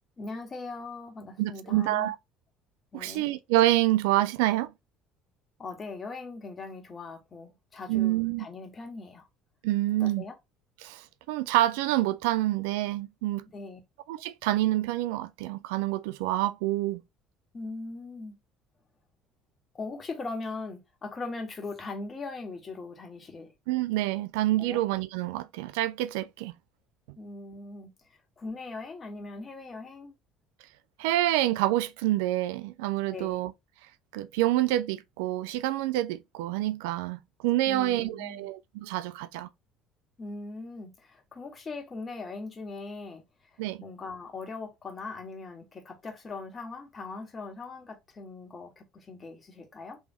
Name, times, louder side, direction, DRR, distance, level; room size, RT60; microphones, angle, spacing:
voice 1, 0.2-2.1 2.9-3.3 5.6-9.3 10.0-10.3 13.5-13.8 17.5-18.3 19.7-23.5 24.6-24.8 27.2-27.9 28.4-30.2 33.1-33.4 37.6-38.5 40.2-43.2 43.5-50.0, left 3 dB, 35° left, 1.5 m, -40 dB
voice 2, 1.4-2.2 2.9-4.7 7.9-8.5 9.6-10.3 10.8-13.4 14.1-17.0 23.7-26.5 31.0-33.5 34.1-39.5 43.6-43.8, right 15 dB, 75° right, 0.3 m, -27 dB
3.4 x 3.1 x 2.7 m
hypercardioid pair, 65°, 0 cm